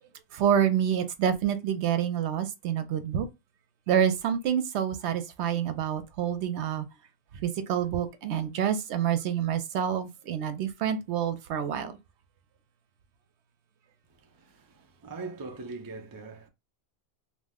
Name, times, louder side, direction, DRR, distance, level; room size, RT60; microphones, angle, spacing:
voice 1, 0.3-3.3 3.9-6.8 7.4-11.9, right 9 dB, 85° right, 0.9 m, -27 dB
voice 2, 14.4-16.5, right 3 dB, 35° right, 0.3 m, -41 dB
2.8 x 2.1 x 3.5 m
omnidirectional pair, 1.1 m